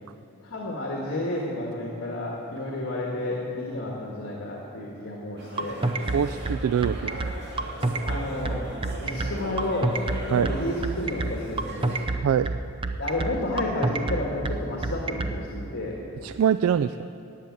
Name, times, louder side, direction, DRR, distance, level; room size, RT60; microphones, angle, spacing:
voice 1, 0.4-5.8 7.8-10.0 10.2-12.0 13.0-15.9, left 1 dB, 55° left, -2 dB, 1.9 m, -31 dB
sound 1, 5.4-12.1, right 1 dB, 50° right, 2.5 m, -39 dB
sound 2, 5.6-15.4, right 2 dB, 25° right, 0.6 m, -27 dB
voice 2, 6.1-7.3 10.3-10.5 12.2-12.6 16.2-17.1, right 8 dB, 75° right, 12 dB, 0.3 m, -24 dB
16.0 x 7.2 x 9.4 m, 2.7 s
head